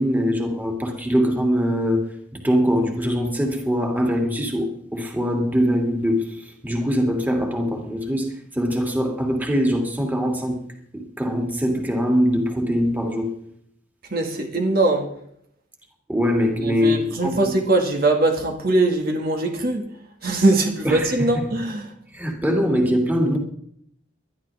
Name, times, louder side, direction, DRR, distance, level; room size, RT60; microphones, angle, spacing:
voice 1, 0.0-10.6 10.9-13.3 16.1-17.5 20.8-21.4 22.1-23.4, equal, 10° right, 2.6 m, -22 dB
voice 2, 14.1-15.1 16.6-19.9 20.2-21.9, right 2 dB, 50° right, 2.0 m, -21 dB
21.0 x 12.5 x 3.6 m
head